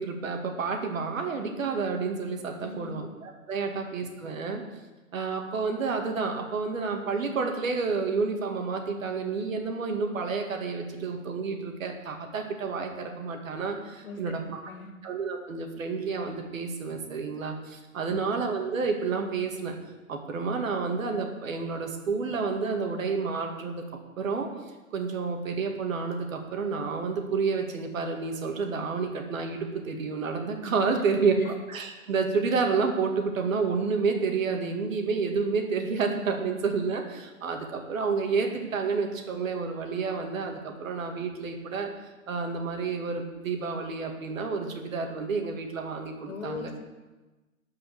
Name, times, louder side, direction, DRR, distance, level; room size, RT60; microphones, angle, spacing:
voice 1, 0.0-4.6 5.1-14.6 15.0-19.8 20.1-23.8 24.2-24.5 24.9-41.9 42.3-46.7, right 4 dB, 65° right, 3 dB, 2.2 m, -30 dB
voice 2, 2.6-3.0 14.0-14.3 14.6-14.9 18.1-18.2 46.3-46.8, left 4 dB, 75° left, 4 dB, 2.1 m, -39 dB
12.5 x 5.5 x 6.8 m, 1.2 s
hypercardioid pair, 165°, 42 cm